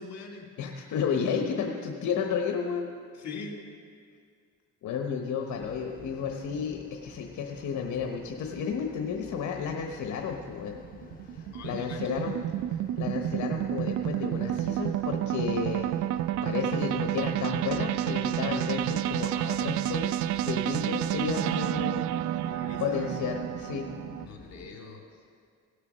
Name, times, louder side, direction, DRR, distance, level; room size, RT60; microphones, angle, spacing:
voice 1, 0.0-0.5 3.2-3.5 11.5-12.2 22.5-23.0 24.2-25.0, left 4 dB, 60° left, 0 dB, 2.6 m, -42 dB
voice 2, 0.6-2.9 4.8-10.7 11.3-12.4 12.7-15.9 16.4-20.1 20.4-22.0 22.4-22.5 22.8-23.9, left 6 dB, 75° left, 3 dB, 1.0 m, -32 dB
sound 1, 5.5-24.7, left 4 dB, 30° left, 1.0 m, -50 dB
sound 2, 10.0-24.3, right 12 dB, 75° right, 0.4 m, -30 dB
17.0 x 6.7 x 6.1 m, 2.1 s
cardioid pair, 90°, 30 cm